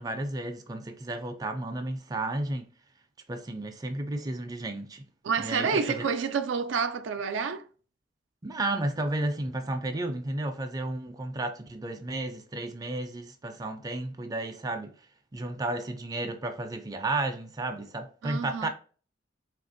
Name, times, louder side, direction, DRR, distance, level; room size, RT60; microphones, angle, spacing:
voice 1, 0.0-2.7 3.3-5.1 5.4-6.1 8.4-14.9 15.3-18.7, right 2 dB, 20° right, 0.3 m, -33 dB
voice 2, 5.2-7.6 18.2-18.7, right 5 dB, 90° right, 0.4 m, -29 dB
3.6 x 2.4 x 2.5 m
head